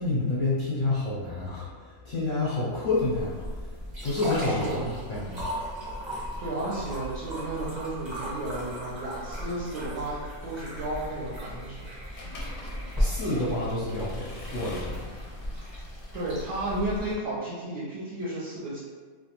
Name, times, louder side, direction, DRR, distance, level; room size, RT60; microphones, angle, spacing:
voice 1, 0.0-3.7 4.0-5.5 13.0-15.1, left 2 dB, 55° left, -7 dB, 0.6 m, -29 dB
sound 1, 2.9-17.1, equal, 25° right, 0.7 m, -36 dB
voice 2, 4.4-4.9 6.4-12.2 16.1-18.8, right 1 dB, 70° right, -8 dB, 0.9 m, -33 dB
Accelerating revving vroom / Mechanisms, 12.2-17.1, left 2 dB, 90° left, 1.0 m, -45 dB
2.4 x 2.1 x 2.8 m, 1.5 s
omnidirectional pair, 1.4 m